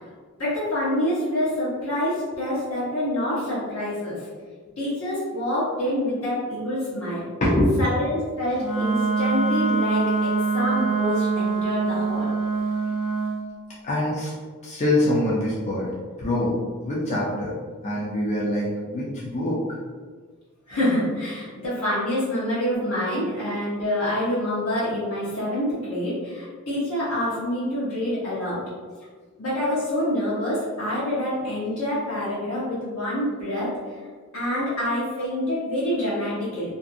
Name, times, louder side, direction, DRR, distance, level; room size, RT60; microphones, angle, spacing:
voice 1, 0.4-4.3 4.8-7.2 7.8-12.3 20.7-28.6 29.4-33.7 34.3-36.7, left 1 dB, 80° left, -10 dB, 0.9 m, -26 dB
voice 2, 7.4-7.8 12.9-13.0 13.8-14.4 14.6-15.9 16.2-17.5 17.8-19.6, left 1 dB, 30° left, -6 dB, 0.4 m, -24 dB
Wind instrument woodwind instrument, 8.6-13.3, right 4 dB, 60° left, 1.2 m, -24 dB
2.6 x 2.4 x 2.5 m, 1.6 s
head